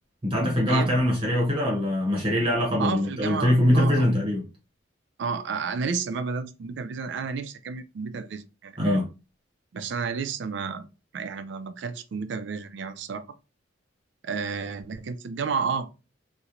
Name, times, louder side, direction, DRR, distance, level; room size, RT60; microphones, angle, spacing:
voice 1, 0.2-4.4 8.8-9.1, left 1 dB, 25° right, 0.8 m, -23 dB
voice 2, 2.8-4.1 5.2-9.0 9.7-10.9 11.1-13.3 14.2-16.0, right 5 dB, 65° right, 0.3 m, -31 dB
2.8 x 2.1 x 2.5 m
head